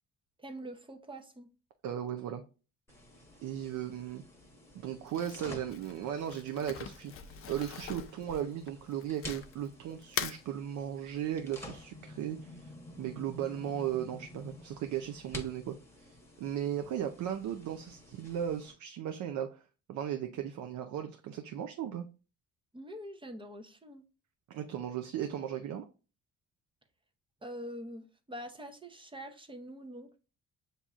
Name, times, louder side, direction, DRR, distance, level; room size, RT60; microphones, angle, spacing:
voice 1, 0.4-1.5 22.7-24.0 27.4-30.2, equal, 15° right, 0.8 m, -45 dB
voice 2, 1.8-2.4 3.4-4.2 4.8-7.1 7.5-12.7 13.0-19.6 19.9-22.1 24.5-25.9, right 10 dB, 70° right, 0.6 m, -36 dB
sound 1, 2.9-18.7, left 1 dB, 10° left, 1.2 m, -50 dB
Crumpling crinkling, 5.1-9.7 10.0-10.4, left 8 dB, 45° left, 0.5 m, -41 dB
7.4 x 2.7 x 2.4 m
cardioid pair, 90°, 30 cm